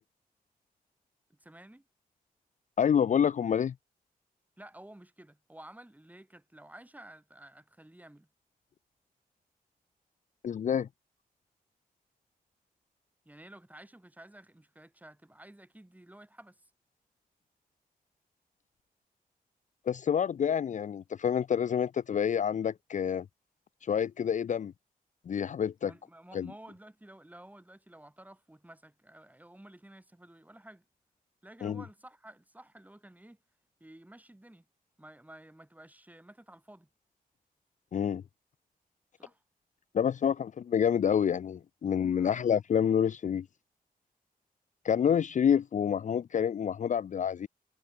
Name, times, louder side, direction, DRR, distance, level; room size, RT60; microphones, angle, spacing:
voice 1, 1.4-1.8 4.6-8.3 13.2-16.6 25.9-30.8 31.4-33.4 33.8-34.6 35.0-36.9 39.2-39.4 42.2-42.4, right 1 dB, 10° right, 4.9 m, -52 dB
voice 2, 2.8-3.7 10.4-10.9 19.9-23.3 23.8-24.7 25.3-25.9 26.3-26.5 31.6-31.8 37.9-38.2 39.9-43.5 44.8-47.5, left 8 dB, 55° left, 0.4 m, -28 dB
wide cardioid pair, 100°, 15 cm